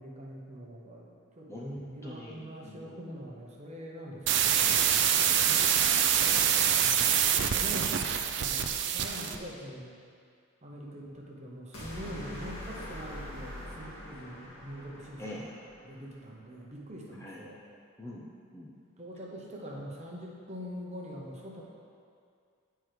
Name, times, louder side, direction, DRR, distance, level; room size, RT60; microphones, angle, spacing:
voice 1, 0.0-4.7 6.6-8.0 8.3-9.9 10.6-15.5 15.8-17.6 19.0-21.6, equal, 30° right, -2 dB, 0.9 m, -44 dB
voice 2, 1.5-3.1 5.3-6.7 15.2-15.5 17.2-17.4 18.0-18.7, left 1 dB, 10° left, -5 dB, 0.6 m, -44 dB
sound 1, 4.3-9.4, right 9 dB, 55° right, 0.4 m, -25 dB
sound 2, 11.7-16.0, left 1 dB, 80° left, 1.8 m, -43 dB
8.3 x 4.5 x 4.9 m, 2.3 s
head